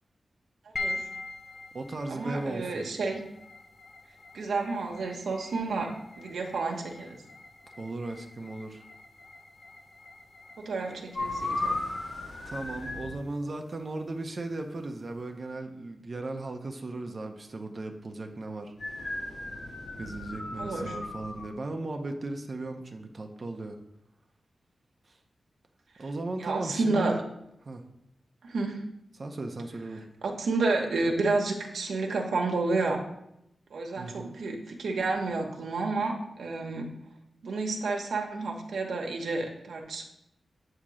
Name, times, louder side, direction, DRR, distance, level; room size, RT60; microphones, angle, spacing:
sound 1, 0.7-15.2, left 3 dB, 35° left, 0.7 m, -44 dB
voice 1, 0.7-1.0 2.1-3.2 4.3-7.2 10.6-11.8 20.6-20.9 26.4-27.1 28.4-28.8 30.2-33.0 33.7-36.9 37.4-40.0, right 3 dB, 90° right, 2 dB, 1.1 m, -30 dB
voice 2, 1.7-2.9 7.8-8.8 10.9-11.0 12.4-18.7 20.0-23.8 25.1-25.2 26.0-27.2 27.6-27.8 29.2-30.0 33.9-34.3, right 2 dB, 35° right, 4 dB, 0.6 m, -37 dB
sound 2, 11.1-13.1 18.8-21.5, left 2 dB, 65° left, 2.9 m, -35 dB
8.5 x 2.9 x 6.1 m, 0.82 s
wide cardioid pair, 160°, 0 cm